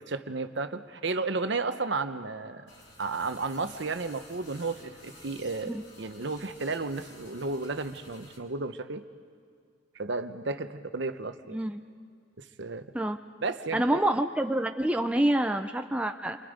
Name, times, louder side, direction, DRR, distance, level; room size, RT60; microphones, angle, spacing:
voice 1, 0.0-2.7 3.0-9.0 9.9-11.6 12.4-12.9 13.4-13.8, right 3 dB, 60° right, 9 dB, 0.9 m, -33 dB
sound 1, 2.7-8.4, left 2 dB, 75° left, 4.3 m, -52 dB
voice 2, 13.7-16.4, right 1 dB, 5° right, 5 dB, 0.5 m, -27 dB
29.0 x 25.0 x 5.1 m, 2.2 s
head